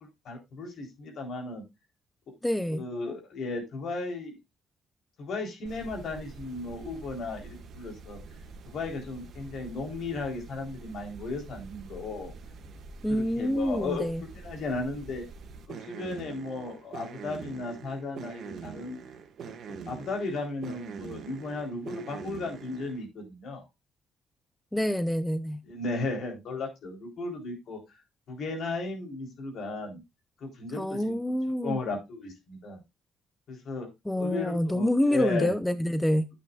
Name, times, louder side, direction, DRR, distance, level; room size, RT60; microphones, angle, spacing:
voice 1, 0.3-1.6 2.7-4.4 5.2-8.2 8.7-12.3 13.1-14.1 14.4-15.3 15.7-19.0 19.4-23.6 25.6-28.0 28.3-30.0 30.4-32.8 33.5-33.9 34.2-35.5, left 3 dB, 70° left, 3.7 m, -35 dB
voice 2, 2.4-2.8 13.0-14.2 24.7-25.6 30.8-31.8 34.1-36.3, equal, 5° left, 0.6 m, -27 dB
sound 1, 5.7-23.1, right 5 dB, 65° right, 1.7 m, -45 dB
10.5 x 8.5 x 2.4 m
cardioid pair, 90°, 0 cm